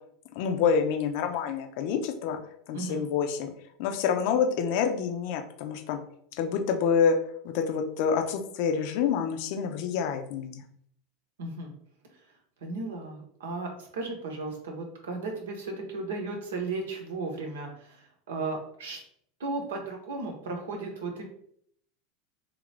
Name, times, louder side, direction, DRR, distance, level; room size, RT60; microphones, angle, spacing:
voice 1, 0.4-2.4 2.7-3.5 3.8-6.0 6.4-7.2 7.4-10.6, left 6 dB, 60° left, 5 dB, 0.5 m, -27 dB
voice 2, 11.4-11.7 12.6-19.0 19.4-21.2, right 3 dB, 75° right, 2 dB, 0.8 m, -35 dB
2.8 x 2.5 x 3.2 m, 0.66 s
hypercardioid pair, 85°, 0 cm